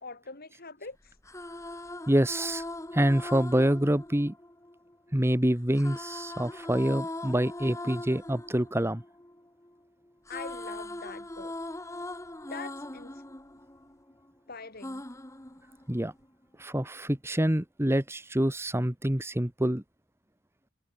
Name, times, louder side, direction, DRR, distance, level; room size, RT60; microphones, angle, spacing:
voice 1, 0.0-1.2 10.3-11.5 12.5-13.2 14.5-15.0, left 4 dB, 45° left, 3.3 m, -43 dB
sound 1, 1.1-5.2 5.7-9.8 10.1-14.3 14.8-16.3, left 1 dB, 15° left, 1.6 m, -41 dB
voice 2, 2.1-2.6 2.9-4.3 5.1-9.0 15.9-16.1 16.6-19.8, right 1 dB, 10° right, 1.4 m, -26 dB
head